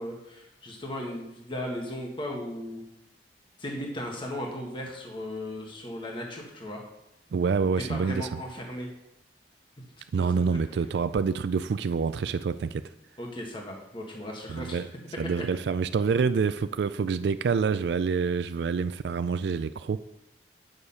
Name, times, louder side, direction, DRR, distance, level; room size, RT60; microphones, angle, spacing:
voice 1, 0.0-2.8 3.6-6.8 7.9-8.9 10.2-10.6 13.2-14.8 15.4-15.5, left 1 dB, 30° left, 0 dB, 1.6 m, -36 dB
voice 2, 7.3-8.4 10.1-12.9 14.5-14.9 15.2-20.0, right 5 dB, 70° right, 12 dB, 0.3 m, -27 dB
9.6 x 6.5 x 5.5 m, 0.86 s
head